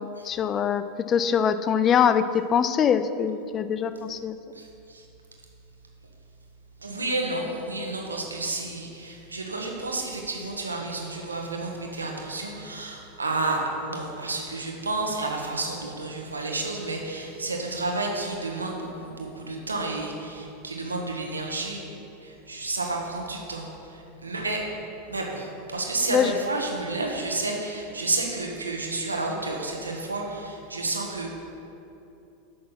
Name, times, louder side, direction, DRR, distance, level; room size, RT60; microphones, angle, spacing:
voice 1, 0.0-4.4 26.1-26.3, left 7 dB, 30° left, 12 dB, 0.4 m, -23 dB
voice 2, 4.5-5.1 6.8-24.6 25.1-31.3, right 2 dB, 85° right, 1 dB, 1.4 m, -31 dB
9.1 x 6.3 x 6.0 m, 2.8 s
figure-of-eight pair, 85°, 0 cm